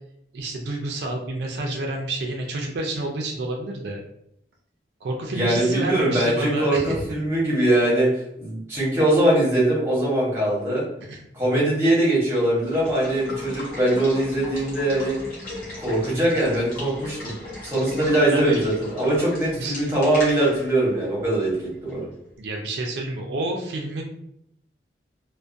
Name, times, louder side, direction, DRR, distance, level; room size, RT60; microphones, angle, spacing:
voice 1, 0.3-4.0 5.0-7.0 11.0-11.2 18.0-18.6 19.6-19.7 22.4-24.0, right 2 dB, 75° right, 1 dB, 0.4 m, -29 dB
voice 2, 5.3-8.1 8.4-10.8 11.3-15.2 15.8-17.3 17.6-21.5 21.8-22.1, right 1 dB, 15° right, -6 dB, 0.9 m, -21 dB
Water / Water tap faucet / Liquid, 12.5-22.1, left 1 dB, 50° left, 0.9 m, -38 dB
2.3 x 2.1 x 2.5 m, 0.76 s
head